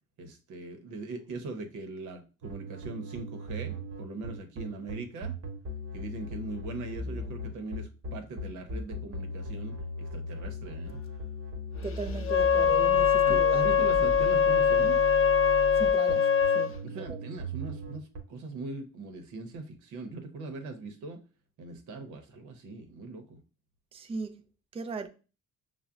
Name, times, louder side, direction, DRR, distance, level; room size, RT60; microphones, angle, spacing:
voice 1, 0.2-5.4 5.9-11.0 13.2-15.0 16.8-21.2 21.6-23.4, right 3 dB, 80° right, 0.8 m, -40 dB
sound 1, 2.4-18.2, equal, 55° right, 1.0 m, -38 dB
voice 2, 11.8-13.7 15.8-16.3 16.5-17.2 23.9-24.3 24.7-25.1, right 4 dB, 20° right, 0.4 m, -37 dB
Wind instrument woodwind instrument, 12.2-16.7, left 7 dB, 45° left, 0.5 m, -23 dB
5.5 x 2.1 x 2.4 m
cardioid pair, 90°, 30 cm